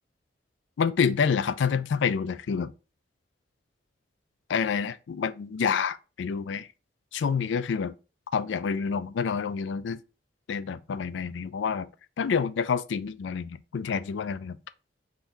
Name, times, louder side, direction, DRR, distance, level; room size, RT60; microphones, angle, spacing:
voice 1, 0.8-2.7 4.5-6.7 7.1-7.9 8.3-10.0 10.5-11.9 12.2-14.6, left 6 dB, 90° left, 0.4 m, -28 dB
3.7 x 2.7 x 4.5 m
head